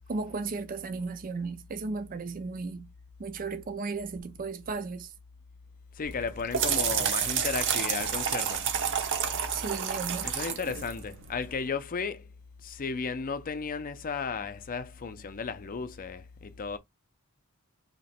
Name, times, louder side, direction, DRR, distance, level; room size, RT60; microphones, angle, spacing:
voice 1, 0.1-2.9 3.2-5.1 9.5-10.3, right 4 dB, 40° right, 0.5 m, -35 dB
voice 2, 5.9-8.7 10.2-12.3 12.6-16.8, left 5 dB, 40° left, 0.5 m, -34 dB
sound 1, 6.0-11.6, right 7 dB, 60° right, 0.8 m, -30 dB
3.1 x 2.9 x 4.2 m
head